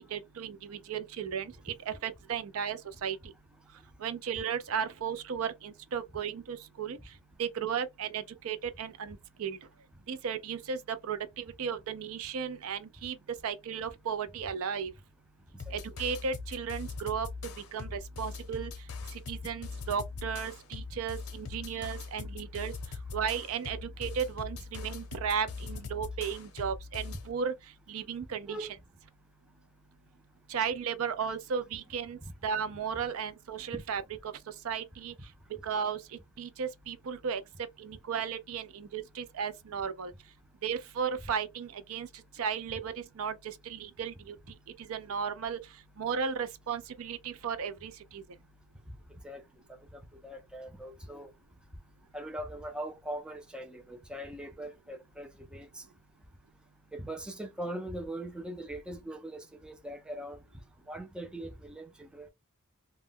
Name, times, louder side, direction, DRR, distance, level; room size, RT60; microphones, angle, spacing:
voice 1, 0.0-3.2 4.0-7.0 7.4-9.6 10.1-13.2 13.4-14.9 15.7-17.3 17.7-18.7 19.1-22.7 23.1-27.5 27.9-28.7 30.5-34.0 34.5-35.1 35.6-36.0 36.4-37.4 37.8-40.1 40.6-42.1 42.4-44.4 44.8-45.6 46.0-48.2, right 7 dB, 70° right, 0.4 m, -35 dB
sound 1, 15.6-27.3, left 4 dB, 80° left, 0.6 m, -41 dB
voice 2, 49.7-51.3 52.1-55.8 56.9-60.4 60.9-62.3, right 1 dB, 5° right, 0.3 m, -41 dB
2.2 x 2.0 x 3.5 m
head